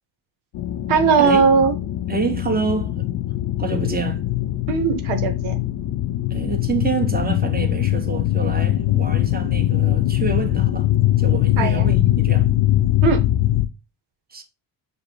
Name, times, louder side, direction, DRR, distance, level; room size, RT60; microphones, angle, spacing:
sound 1, 0.5-13.7, left 14 dB, 65° left, 0.6 m, -21 dB
voice 1, 0.9-1.7 4.7-5.6 11.6-11.9 13.0-13.2, right 5 dB, 90° right, 0.9 m, -18 dB
voice 2, 2.1-3.1 3.6-4.2 6.3-10.9 11.2-12.5 14.3-14.4, right 4 dB, 20° right, 1.1 m, -27 dB
5.2 x 2.2 x 4.4 m
supercardioid pair, 60°, 46 cm